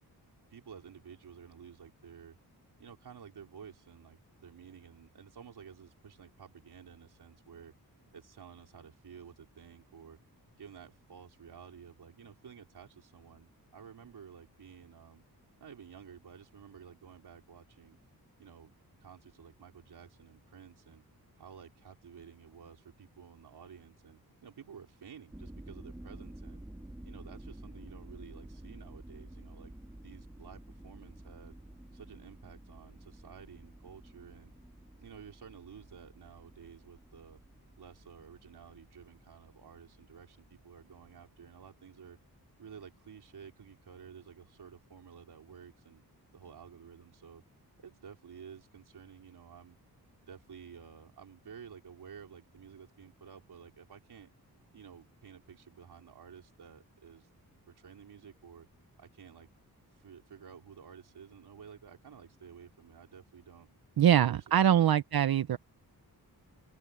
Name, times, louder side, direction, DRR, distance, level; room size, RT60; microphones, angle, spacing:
voice 1, 0.5-2.4 2.8-7.7 8.1-10.2 10.6-15.2 15.6-18.0 18.4-18.7 19.0-21.0 21.4-26.6 27.0-29.7 30.0-31.6 31.9-34.5 35.0-37.4 37.8-42.2 42.6-46.0 46.3-47.4 47.8-49.8 50.3-54.3 54.7-57.3 57.7-58.7 59.0-59.5 59.9-63.7 64.0-64.9, right 7 dB, 85° right, 4.0 m, -52 dB
sound 1, 25.3-41.1, right 1 dB, 10° right, 3.2 m, -51 dB
voice 2, 64.0-65.6, right 10 dB, 70° right, 0.7 m, -24 dB
open air
wide cardioid pair, 145°, 38 cm